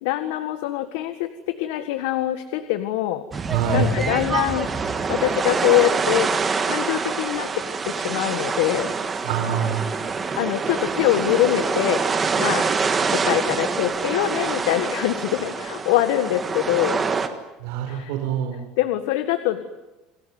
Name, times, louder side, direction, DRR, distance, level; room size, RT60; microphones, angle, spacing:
voice 1, 0.0-3.2 3.7-4.7 5.1-6.3 6.7-8.9 10.4-12.1 12.4-12.7 13.1-17.0 17.9-18.1 18.8-19.7, left 14 dB, 85° left, 10 dB, 1.6 m, -24 dB
sound 1, 3.3-17.3, right 5 dB, 15° right, 1.7 m, -25 dB
voice 2, 3.5-4.0 9.2-9.9 17.6-18.6, right 6 dB, 75° right, 4 dB, 4.4 m, -24 dB
28.5 x 19.5 x 9.6 m, 1.1 s
cardioid pair, 175°, 0 cm